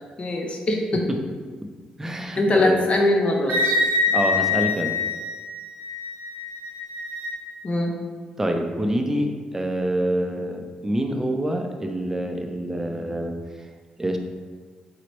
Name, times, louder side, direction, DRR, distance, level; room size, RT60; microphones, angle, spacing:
voice 1, 0.2-1.0 2.4-3.8 7.6-7.9, left 1 dB, 45° left, 1 dB, 0.6 m, -22 dB
voice 2, 2.0-2.8 4.1-5.0 8.4-13.4 14.0-14.2, right 1 dB, 15° right, 4 dB, 0.4 m, -26 dB
Wind instrument woodwind instrument, 3.5-7.3, left 3 dB, 50° right, 0.8 m, -25 dB
4.2 x 2.0 x 2.9 m, 1.5 s
supercardioid pair, 60°, 3 cm